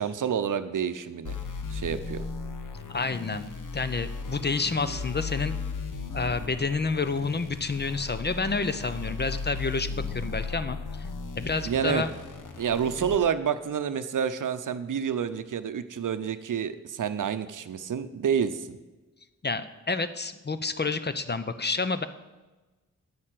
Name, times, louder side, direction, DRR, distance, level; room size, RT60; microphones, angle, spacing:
voice 1, 0.0-1.4 1.7-2.2 11.7-12.0 12.6-18.8, right 7 dB, 70° right, 11 dB, 0.7 m, -28 dB
sound 1, 1.2-13.2, left 4 dB, 70° left, 1.1 m, -36 dB
voice 2, 2.9-3.5 3.7-5.6 6.1-11.1 11.4-12.1 13.0-13.1 19.4-22.1, left 4 dB, 30° left, 12 dB, 0.7 m, -29 dB
8.7 x 6.5 x 7.6 m, 1.2 s
cardioid pair, 50°, 33 cm